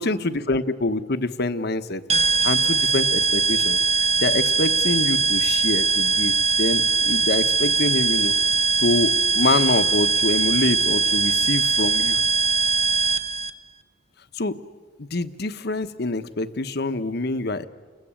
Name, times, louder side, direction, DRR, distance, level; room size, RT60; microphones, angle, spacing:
voice 1, 0.0-8.3 8.8-12.2 14.3-14.5 15.0-17.6, left 2 dB, 60° left, 11 dB, 1.1 m, -26 dB
sound 1, 2.1-13.5, right 4 dB, 35° right, 0.8 m, -21 dB
29.5 x 21.0 x 8.8 m, 1.5 s
head